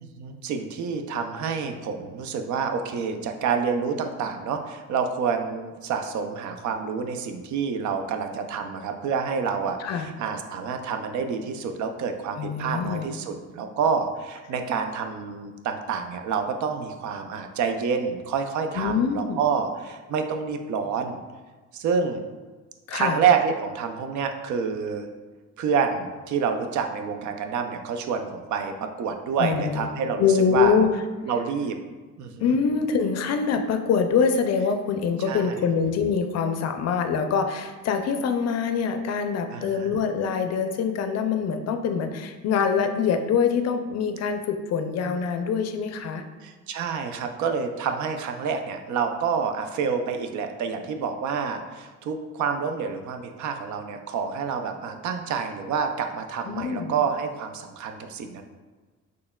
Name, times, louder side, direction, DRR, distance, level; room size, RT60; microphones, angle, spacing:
voice 1, 0.2-21.2 21.7-22.2 22.9-25.1 25.6-30.8 31.3-31.8 32.2-32.6 35.3-35.6 39.5-40.0 46.4-58.4, right 6 dB, 70° right, 6 dB, 0.5 m, -28 dB
voice 2, 12.4-13.1 18.7-19.4 22.9-23.2 29.4-29.9 30.2-30.9 32.4-46.2 56.5-56.9, left 6 dB, 60° left, 7 dB, 0.4 m, -24 dB
4.2 x 3.1 x 2.2 m, 1.3 s
cardioid pair, 90°, 30 cm